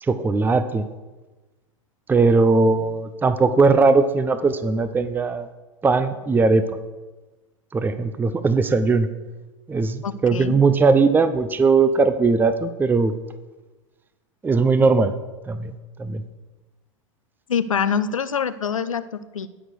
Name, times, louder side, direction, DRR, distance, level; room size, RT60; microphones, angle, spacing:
voice 1, 0.0-0.9 2.1-5.5 5.8-6.8 7.7-9.1 9.7-13.1 14.4-15.1 15.5-15.7 16.0-16.2, right 4 dB, 10° right, 12 dB, 0.6 m, -19 dB
voice 2, 10.0-10.6 17.5-19.5, left 7 dB, 85° left, 14 dB, 0.6 m, -25 dB
11.0 x 6.1 x 6.7 m, 1.2 s
hypercardioid pair, 95°, 16 cm